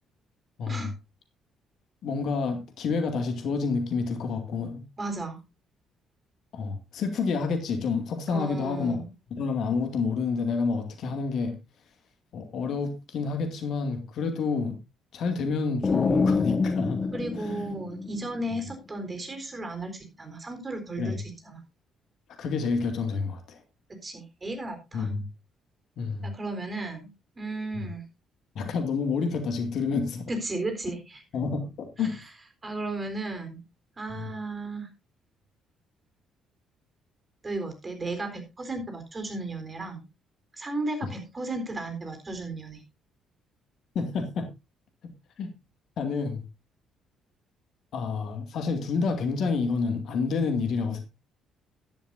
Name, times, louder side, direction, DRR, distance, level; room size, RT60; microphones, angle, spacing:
voice 1, 0.6-0.9 2.0-4.8 6.5-9.0 9.3-11.5 12.3-14.8 15.1-17.0 17.4-17.6 21.0-21.2 22.4-23.6 24.9-25.2 26.0-26.3 27.7-27.9 28.6-30.3 31.3-32.2 34.1-34.3 41.0-41.1 43.9-44.5 45.0-45.1 45.4-45.5 46.0-46.4 47.9-51.0, left 4 dB, 60° left, 2.2 m, -29 dB
voice 2, 5.0-5.4 8.3-9.1 17.1-21.6 24.0-25.1 26.2-27.1 27.4-28.0 30.3-31.2 32.6-33.6 34.0-34.9 37.4-40.0 40.6-42.8, right 2 dB, 30° right, 3.9 m, -34 dB
sound 1, 15.8-18.6, left 4 dB, 35° left, 1.3 m, -27 dB
13.5 x 11.0 x 2.7 m
figure-of-eight pair, 45°, 0 cm